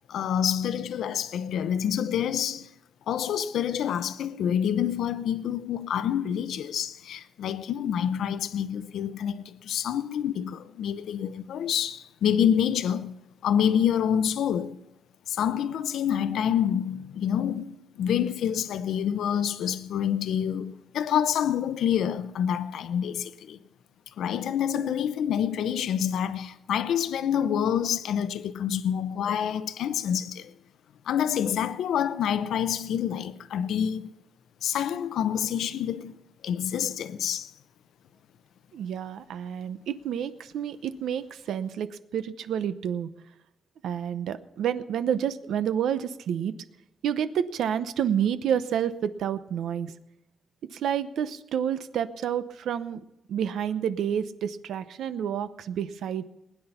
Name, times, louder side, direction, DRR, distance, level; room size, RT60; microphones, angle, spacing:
voice 1, 0.1-2.7 3.1-13.2 13.4-14.8 15.3-23.6 24.2-30.5 31.1-34.1 34.6-36.1 36.4-37.5, left 9 dB, 85° left, 0.7 m, -27 dB
voice 2, 38.7-43.1 43.8-46.5 47.0-49.9 50.7-53.0 53.3-56.2, right 9 dB, 90° right, 0.8 m, -29 dB
20.0 x 10.0 x 5.8 m
wide cardioid pair, 145°, 0 cm